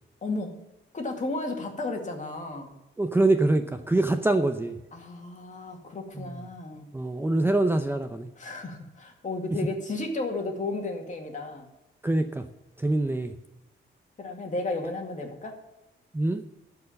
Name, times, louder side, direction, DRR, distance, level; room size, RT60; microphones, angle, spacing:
voice 1, 0.2-0.7 0.9-2.7 4.9-6.9 8.4-11.7 14.2-15.6, left 2 dB, 35° left, 2 dB, 2.3 m, -33 dB
voice 2, 3.0-4.7 6.2-6.4 6.9-8.3 12.0-12.4 12.8-13.3 16.1-16.4, right 2 dB, 10° right, 7 dB, 0.7 m, -24 dB
12.0 x 4.8 x 8.5 m, 0.98 s
cardioid pair, 105°, 21 cm